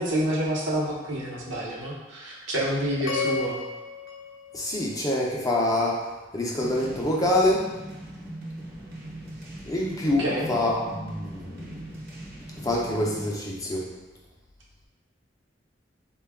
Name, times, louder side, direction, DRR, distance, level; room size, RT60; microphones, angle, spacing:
voice 1, 0.0-3.6 10.0-10.5, right 1 dB, 85° right, -4 dB, 0.9 m, -28 dB
sound 1, 3.1-5.4, left 4 dB, 70° left, 0.5 m, -34 dB
voice 2, 4.5-6.0 6.3-7.7 9.7-11.7 12.6-13.9, left 1 dB, 20° left, -3 dB, 0.5 m, -26 dB
sound 2, 6.6-13.3, right 1 dB, 50° right, 0.7 m, -40 dB
3.9 x 2.3 x 3.4 m, 1.1 s
head